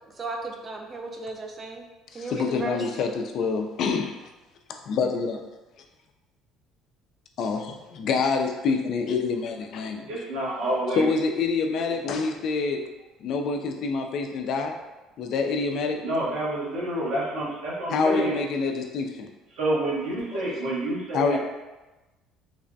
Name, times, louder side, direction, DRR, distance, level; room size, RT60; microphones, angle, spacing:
voice 1, 0.2-1.9 2.1-2.8, right 3 dB, 35° right, 2 dB, 0.5 m, -35 dB
voice 2, 2.1-4.2 4.9-5.4 7.4-10.1 10.9-12.9 13.2-14.8 15.2-16.0 17.9-19.3 20.3-20.4 21.1-21.4, left 4 dB, 65° left, 4 dB, 0.3 m, -26 dB
voice 3, 10.1-11.1 16.0-18.4 19.5-21.4, right 1 dB, 75° right, -5 dB, 1.0 m, -28 dB
3.2 x 2.1 x 2.6 m, 1.1 s
supercardioid pair, 75°, 0 cm